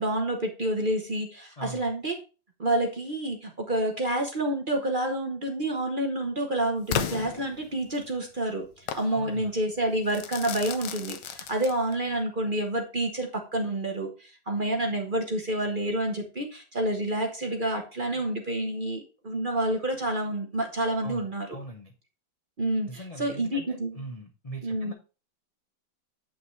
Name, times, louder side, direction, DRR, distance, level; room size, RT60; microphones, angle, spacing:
voice 1, 0.0-2.2 2.6-21.5 22.6-24.0 24.6-24.9, right 1 dB, 35° right, 2 dB, 0.9 m, -29 dB
Crackle / Fireworks, 6.9-8.1 8.9-9.1 10.1-12.1, left 9 dB, 70° left, 1.3 m, -34 dB
voice 2, 9.1-9.5 21.0-21.9 22.9-24.9, right 1 dB, 45° left, 2 dB, 0.4 m, -41 dB
8.5 x 5.6 x 3.2 m, 0.34 s
omnidirectional pair, 2.0 m